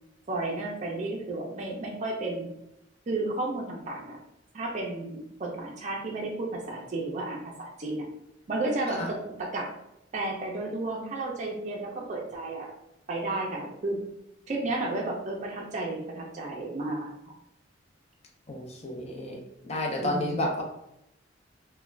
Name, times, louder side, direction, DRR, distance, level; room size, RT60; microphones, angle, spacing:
voice 1, 0.3-2.5 3.1-4.2 4.5-8.0 8.5-9.7 10.1-12.7 13.1-14.0 14.5-17.1 20.0-20.4, right 2 dB, 40° right, -1 dB, 0.4 m, -32 dB
voice 2, 18.5-19.4 19.6-20.6, left 1 dB, 35° left, 1 dB, 0.5 m, -31 dB
2.4 x 2.2 x 3.1 m, 0.82 s
head